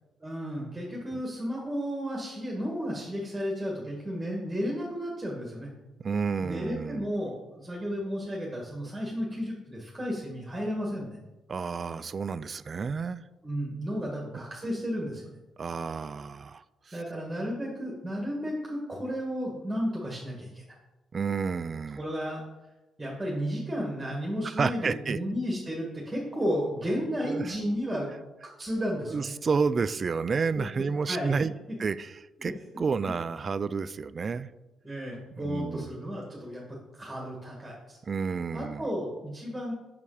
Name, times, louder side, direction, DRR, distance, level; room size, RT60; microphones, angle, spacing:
voice 1, 0.2-5.7 6.4-11.2 13.4-15.2 16.9-20.6 21.9-22.4 23.0-28.1 28.6-29.3 30.8-31.3 32.4-32.5 34.2-34.3 34.8-36.6 36.9-38.0 38.5-39.7, equal, 15° right, -2 dB, 1.7 m, -33 dB
voice 2, 6.0-7.1 11.5-13.2 14.3-14.4 15.6-17.0 21.1-22.0 24.4-25.2 27.2-27.5 29.1-34.5 35.4-35.9 38.1-38.8, right 5 dB, 40° right, 16 dB, 0.3 m, -30 dB
5.8 x 5.3 x 4.9 m, 1.1 s
cardioid pair, 90°, 0 cm